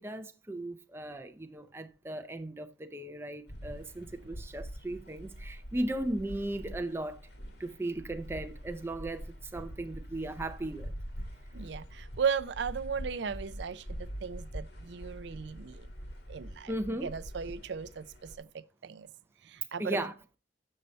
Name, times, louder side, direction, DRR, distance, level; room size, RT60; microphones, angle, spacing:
voice 1, 0.0-7.2 7.6-9.2 9.5-10.9 16.7-17.1 19.8-20.1, right 1 dB, 15° right, 0.4 m, -36 dB
sound 1, 3.5-18.4, equal, 65° left, 1.6 m, -44 dB
voice 2, 11.5-15.9 16.3-16.8 17.0-19.1 19.4-20.0, right 6 dB, 70° right, 0.4 m, -36 dB
6.8 x 6.4 x 4.2 m
head